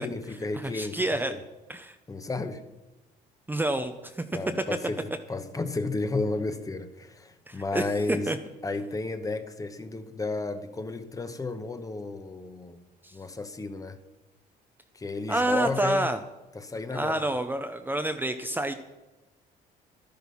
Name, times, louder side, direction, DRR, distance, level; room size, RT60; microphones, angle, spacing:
voice 1, 0.0-1.0 1.3-1.4 2.1-2.6 4.3-8.4 8.6-12.8 13.1-14.0 14.9-16.1 16.5-17.3, left 3 dB, 20° left, 1.0 m, -33 dB
voice 2, 0.7-1.3 1.7-2.0 3.5-4.2 7.5-8.4 13.0-13.2 15.3-16.2 16.9-18.7, right 1 dB, 10° right, 0.7 m, -28 dB
12.0 x 10.5 x 5.6 m
cardioid pair, 110°, 17 cm